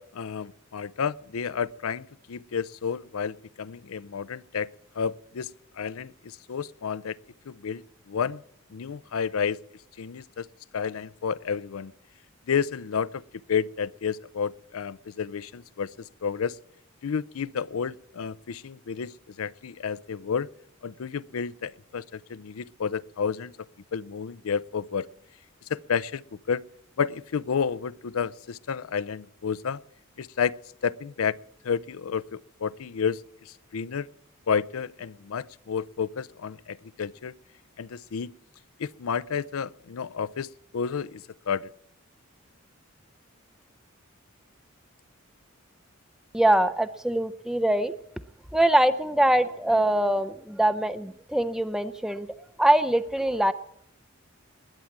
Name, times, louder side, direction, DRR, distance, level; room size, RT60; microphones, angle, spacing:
voice 1, 0.0-4.7 5.0-5.5 5.8-7.2 7.5-8.4 8.7-9.6 10.0-10.5 10.7-11.9 12.5-13.2 13.5-15.9 16.2-16.6 17.0-19.1 19.4-20.5 20.8-23.5 23.9-25.1 25.7-26.2 26.5-26.6 27.0-29.8 30.2-30.6 30.8-31.4 31.6-33.2 33.5-34.1 34.5-37.3 37.8-38.3 38.8-41.7, left 6 dB, 80° left, 0.5 m, -31 dB
voice 2, 46.3-47.9 48.5-52.3 52.6-53.5, right 1 dB, ahead, 0.5 m, -23 dB
20.5 x 9.4 x 7.3 m
head